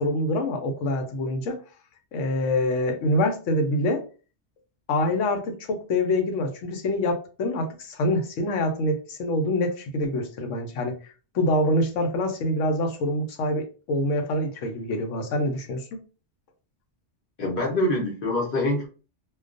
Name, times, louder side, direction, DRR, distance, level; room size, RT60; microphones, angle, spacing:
voice 1, 0.0-1.6 2.1-4.0 4.9-10.9 11.3-15.8, left 1 dB, 80° left, 5 dB, 1.0 m, -25 dB
voice 2, 17.4-18.9, left 1 dB, 50° left, -1 dB, 1.0 m, -25 dB
2.3 x 2.2 x 2.4 m, 0.36 s
omnidirectional pair, 1.2 m